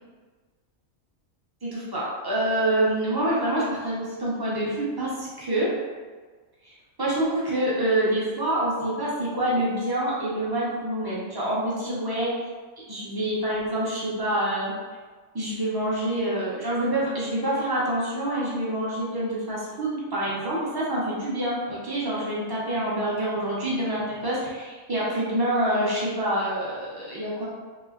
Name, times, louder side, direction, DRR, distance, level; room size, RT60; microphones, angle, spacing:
voice 1, 1.6-5.7 6.6-6.7 7.0-12.3 12.9-14.7 15.3-27.4, right 1 dB, 35° right, -7 dB, 0.3 m, -26 dB
3.0 x 3.0 x 2.4 m, 1.4 s
omnidirectional pair, 1.5 m